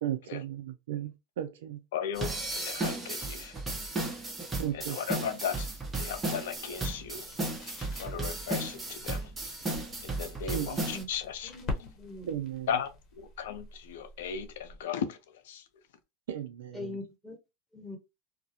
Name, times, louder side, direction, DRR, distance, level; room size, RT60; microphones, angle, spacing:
voice 1, 0.0-1.8 4.6-5.0 9.7-9.8 10.5-10.8 12.3-12.7 16.3-17.0, right 11 dB, 85° right, 0.3 m, -35 dB
voice 2, 1.9-3.6 4.7-5.7 6.0-7.3 8.0-9.3 10.0-11.5 12.7-12.9 13.2-15.6, left 8 dB, 80° left, 0.5 m, -36 dB
sound 1, 2.1-11.0, right 2 dB, 20° right, 0.9 m, -35 dB
sound 2, 4.3-14.9, left 2 dB, 45° left, 0.9 m, -46 dB
voice 3, 11.4-12.3 16.7-17.3 17.7-18.0, left 2 dB, 5° left, 1.3 m, -42 dB
2.3 x 2.0 x 2.7 m
supercardioid pair, 105°, 0 cm